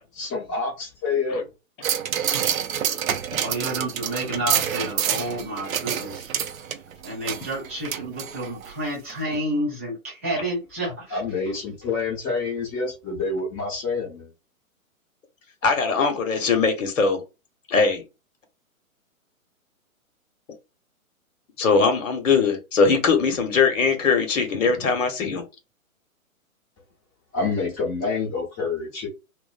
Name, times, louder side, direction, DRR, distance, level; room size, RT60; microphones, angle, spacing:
voice 1, 0.1-1.5 11.1-14.3 27.3-29.1, left 4 dB, 20° left, 0.9 m, -27 dB
sound 1, 1.8-8.7 9.1-9.2, right 9 dB, 70° right, 0.5 m, -27 dB
voice 2, 3.4-6.3 7.0-11.2, right 1 dB, 10° right, 0.4 m, -30 dB
voice 3, 15.6-17.2 17.7-18.0 21.6-25.4, left 5 dB, 60° left, 0.9 m, -21 dB
2.5 x 2.0 x 2.4 m
figure-of-eight pair, 125°, 42 cm